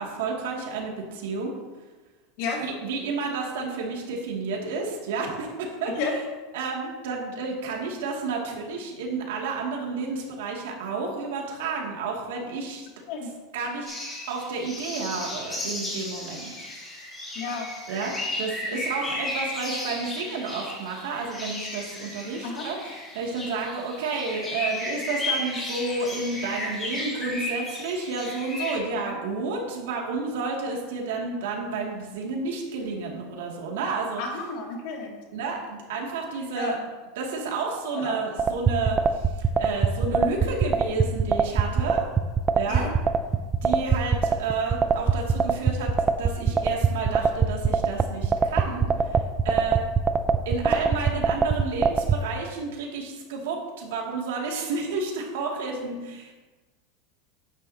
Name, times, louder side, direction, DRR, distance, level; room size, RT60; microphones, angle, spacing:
voice 1, 0.0-1.6 2.6-5.9 6.5-12.9 13.2-13.9 14.3-16.7 17.9-18.1 18.4-34.2 35.3-36.8 37.2-42.0 42.5-42.9 43.6-45.9 46.2-49.8 50.4-56.3, right 4 dB, 80° right, -1 dB, 2.4 m, -31 dB
sound 1, 13.8-28.8, left 1 dB, 15° left, 3.3 m, -34 dB
voice 2, 17.3-17.7 18.7-18.8 22.4-22.7 29.1-29.2 34.2-35.2 36.5-36.7 38.0-38.5 42.7-42.9, left 4 dB, 55° left, -1 dB, 2.5 m, -31 dB
sound 2, 38.4-52.2, right 6 dB, 20° right, 0.5 m, -21 dB
10.5 x 9.4 x 2.9 m, 1.2 s
supercardioid pair, 155°, 0 cm